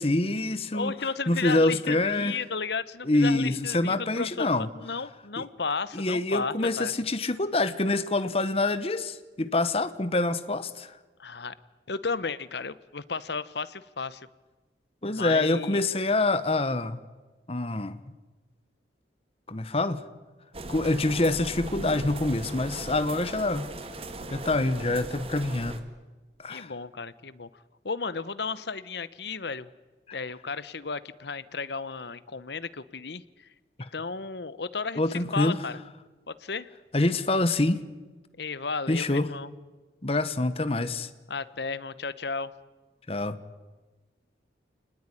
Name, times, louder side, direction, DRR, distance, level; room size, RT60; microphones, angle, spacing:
voice 1, 0.0-0.9 1.3-2.4 3.0-4.7 5.4-5.5 5.9-11.0 15.0-17.0 17.5-18.0 19.5-20.0 20.7-23.7 24.3-25.8 26.4-26.7 33.8-33.9 35.0-35.6 36.9-37.8 38.9-39.3 40.0-41.1 43.1-43.4, left 2 dB, 30° left, 13 dB, 1.0 m, -26 dB
voice 2, 0.7-6.9 11.2-11.6 11.9-14.3 15.1-15.8 26.5-29.7 30.1-33.5 33.9-35.0 35.3-35.8 36.3-36.7 38.4-39.5 41.3-42.5, left 4 dB, 65° left, 17 dB, 1.0 m, -34 dB
sound 1, 20.5-25.8, right 2 dB, 30° right, 1.9 m, -38 dB
27.0 x 20.0 x 9.9 m, 1.3 s
head